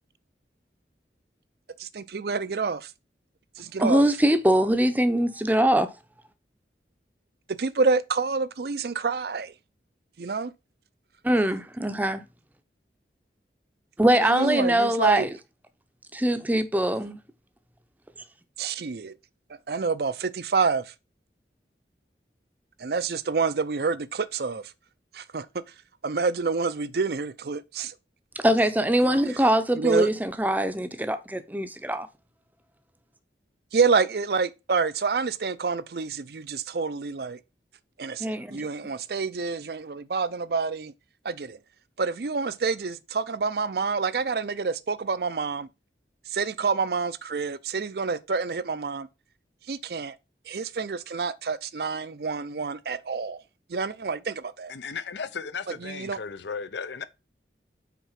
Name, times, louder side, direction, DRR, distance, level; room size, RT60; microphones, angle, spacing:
voice 1, 1.8-2.9 3.6-4.0 7.5-9.5 10.2-10.5 14.2-15.3 18.6-19.1 19.7-20.9 22.8-24.6 25.1-25.5 26.0-27.9 29.8-30.1 33.7-37.4 38.0-40.9 41.2-41.6 42.0-45.7 46.3-49.1 49.7-50.1 50.5-53.4 53.7-54.7 55.8-56.2, right 4 dB, 65° right, 0.5 m, -28 dB
voice 2, 3.8-5.9 11.2-12.2 14.0-15.3 16.1-17.2 28.4-32.1 38.2-38.7, right 1 dB, 10° right, 0.6 m, -22 dB
voice 3, 54.7-57.1, left 5 dB, 85° left, 0.7 m, -35 dB
5.9 x 4.5 x 5.7 m
head